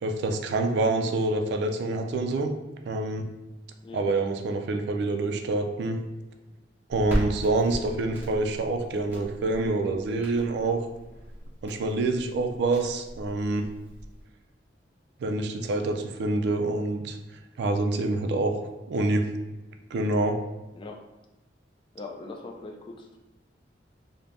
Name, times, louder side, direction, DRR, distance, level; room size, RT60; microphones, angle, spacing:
voice 1, 0.0-2.5 2.9-3.2 3.9-6.0 6.9-10.9 11.6-13.6 15.2-17.2 17.6-19.3 19.9-20.4, right 2 dB, 65° right, 5 dB, 0.3 m, -26 dB
Crackle, 6.9-14.2, equal, 10° right, 0.8 m, -37 dB
voice 2, 20.7-21.1 21.9-23.2, left 3 dB, 30° left, 2 dB, 0.3 m, -41 dB
2.5 x 2.1 x 3.3 m, 1.0 s
head